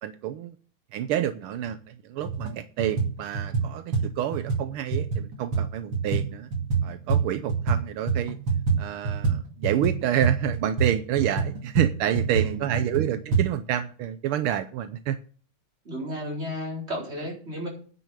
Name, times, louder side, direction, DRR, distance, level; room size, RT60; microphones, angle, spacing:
voice 1, 0.0-0.6 0.9-6.5 6.8-8.4 8.8-15.2, right 11 dB, 80° right, 11 dB, 1.6 m, -28 dB
sound 1, 1.6-1.7 2.2-2.5 2.8-7.8 8.1-13.4, right 5 dB, 65° right, 3.1 m, -26 dB
voice 2, 12.4-12.8 15.8-17.7, equal, 30° right, -2 dB, 4.6 m, -33 dB
9.8 x 6.9 x 8.2 m, 0.43 s
omnidirectional pair, 2.3 m